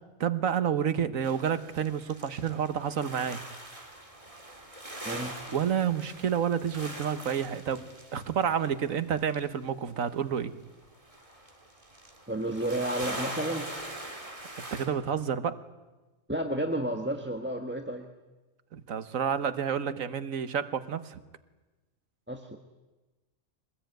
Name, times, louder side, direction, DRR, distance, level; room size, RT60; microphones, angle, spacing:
voice 1, 0.2-3.4 5.5-7.8 8.1-10.5 14.7-15.6 18.7-21.2, right 8 dB, 85° right, 12 dB, 1.6 m, -29 dB
sound 1, 1.2-9.4 10.4-10.5 10.7-14.9, right 1 dB, 25° right, 3.5 m, -42 dB
voice 2, 5.0-5.4 12.3-13.7 16.3-18.1 22.3-22.6, right 1 dB, 10° right, 5 dB, 1.2 m, -31 dB
24.0 x 19.5 x 9.2 m, 1.2 s
omnidirectional pair, 1.4 m